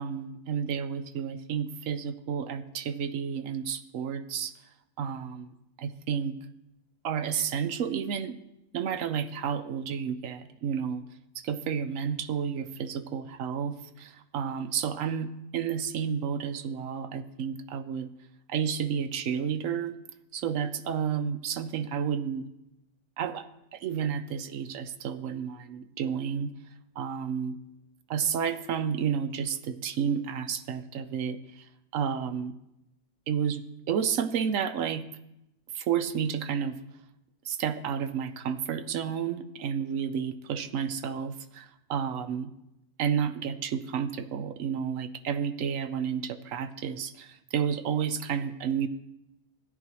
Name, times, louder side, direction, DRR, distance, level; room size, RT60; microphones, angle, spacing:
voice 1, 0.0-4.5 5.0-6.4 7.0-8.4 8.7-11.0 11.3-18.1 18.5-20.0 20.3-22.5 23.2-26.5 27.0-27.6 28.1-31.6 31.9-32.6 33.3-35.0 35.7-36.8 37.4-42.5 43.0-48.9, right 7 dB, 65° right, 11 dB, 1.0 m, -31 dB
14.5 x 10.0 x 3.1 m, 0.87 s
omnidirectional pair, 1.6 m